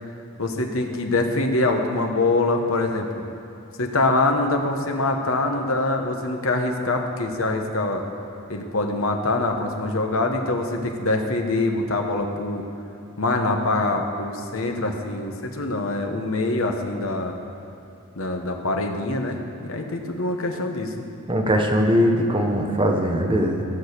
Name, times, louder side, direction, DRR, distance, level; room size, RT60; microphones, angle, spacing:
voice 1, 0.4-3.2 3.8-8.0 8.5-12.6 13.2-17.4 18.2-21.1, left 2 dB, 65° left, 3 dB, 1.1 m, -24 dB
voice 2, 21.3-23.6, equal, 20° right, 2 dB, 1.0 m, -20 dB
14.5 x 6.3 x 6.6 m, 2.9 s
head